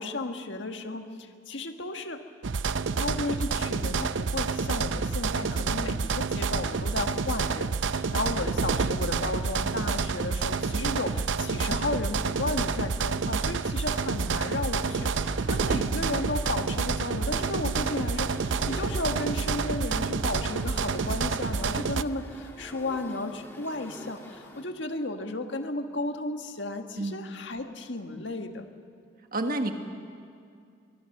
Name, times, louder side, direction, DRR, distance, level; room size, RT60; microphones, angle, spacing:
voice 1, 0.0-2.2 3.0-28.7, left 2 dB, 70° left, 5 dB, 1.6 m, -34 dB
sound 1, 2.4-22.0, right 4 dB, 80° right, 0.6 m, -28 dB
sound 2, 13.9-24.6, equal, 10° left, 2.4 m, -47 dB
voice 2, 29.3-29.7, right 2 dB, 45° right, 6 dB, 1.4 m, -29 dB
23.5 x 22.0 x 6.7 m, 2.3 s
head